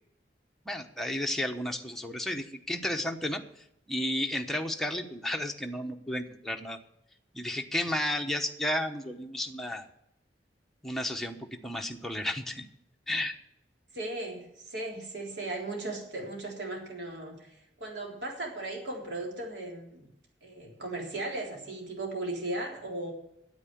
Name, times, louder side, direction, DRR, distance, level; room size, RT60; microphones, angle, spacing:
voice 1, 0.7-3.4 3.9-6.8 7.3-9.8 10.8-12.6 13.1-13.3, left 1 dB, ahead, 2 dB, 1.0 m, -32 dB
voice 2, 13.9-20.1 20.4-23.1, right 2 dB, 75° right, -1 dB, 3.8 m, -37 dB
9.6 x 8.5 x 8.0 m, 0.80 s
head